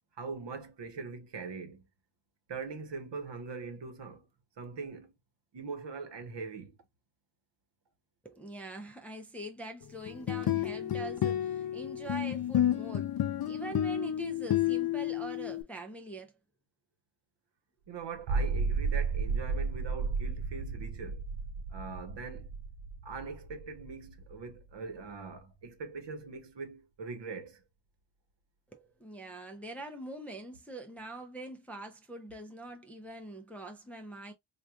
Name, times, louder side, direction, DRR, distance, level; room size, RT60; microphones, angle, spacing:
voice 1, 0.2-1.9 2.5-4.3 4.6-5.1 5.5-6.8 17.9-21.3 21.7-22.5 23.0-27.6, right 4 dB, 60° right, 1.1 m, -42 dB
voice 2, 8.2-13.2 13.5-16.3 28.7-34.3, right 2 dB, 5° left, 0.5 m, -43 dB
sound 1, 10.1-15.6, left 11 dB, 50° left, 0.5 m, -31 dB
sound 2, 18.1-24.6, right 4 dB, 80° right, 0.6 m, -33 dB
4.7 x 2.5 x 2.3 m
wide cardioid pair, 115°, 48 cm